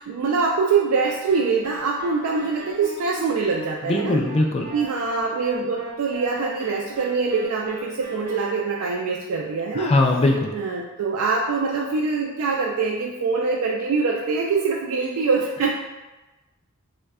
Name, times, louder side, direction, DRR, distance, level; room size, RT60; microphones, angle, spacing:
voice 1, 0.0-4.2 4.7-9.9 10.5-15.7, right 4 dB, 85° right, -1 dB, 0.3 m, -24 dB
sound 1, 0.9-8.4, right 3 dB, 50° right, 0.6 m, -39 dB
voice 2, 3.9-4.7 9.7-10.5, left 2 dB, 30° left, 1 dB, 0.3 m, -20 dB
3.2 x 2.1 x 3.5 m, 1.1 s
head